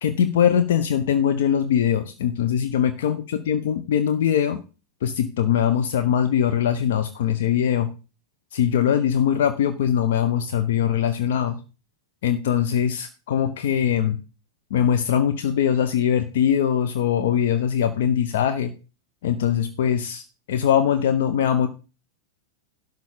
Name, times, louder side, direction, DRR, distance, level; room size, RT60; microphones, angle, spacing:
voice 1, 0.0-4.6 5.0-7.9 8.5-11.6 12.2-14.2 14.7-18.7 19.2-20.2 20.5-21.7, left 9 dB, 55° left, 8 dB, 0.9 m, -21 dB
11.5 x 3.9 x 7.3 m, 0.32 s
figure-of-eight pair, 90°, 0 cm